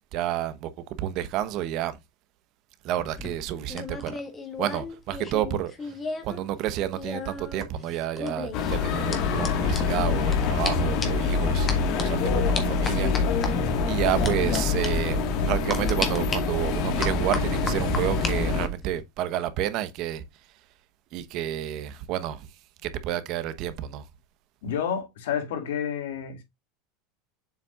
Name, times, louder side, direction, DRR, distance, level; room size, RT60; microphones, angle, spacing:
voice 1, 0.1-0.7 1.0-2.0 2.8-4.2 4.6-5.9 6.2-13.1 13.4-13.6 13.8-15.2 15.5-20.2 21.1-22.5 22.8-24.1, right 11 dB, 45° right, 1.0 m, -30 dB
sound 1, 3.0-6.4 6.6-10.4 10.6-10.7 11.0-11.3 11.7-12.0 12.5-13.5 14.2-14.6 14.8-14.9 15.7-16.4 17.0-18.3 18.7-19.0, left 4 dB, 20° left, 1.5 m, -34 dB
sound 2, 8.5-18.7, left 6 dB, 45° left, 1.5 m, -26 dB
sound 3, 10.8-18.8, right 16 dB, 65° right, 0.6 m, -34 dB
voice 2, 24.6-26.4, left 8 dB, 90° left, 2.3 m, -30 dB
7.5 x 5.9 x 2.4 m
supercardioid pair, 160°, 0 cm